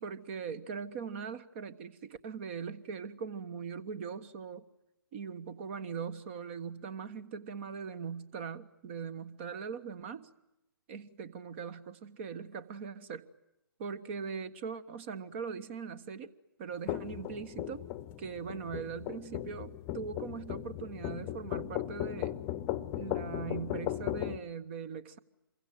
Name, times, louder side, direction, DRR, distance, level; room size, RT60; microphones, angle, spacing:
voice 1, 0.0-4.7 5.1-10.3 10.9-13.2 13.8-16.3 16.6-17.9 18.2-22.4 22.9-25.2, right 6 dB, 30° right, 17 dB, 1.4 m, -40 dB
sound 1, 16.9-24.4, left 13 dB, 20° left, 1.0 m, -37 dB
27.5 x 23.5 x 9.1 m, 0.87 s
figure-of-eight pair, 135°, 12 cm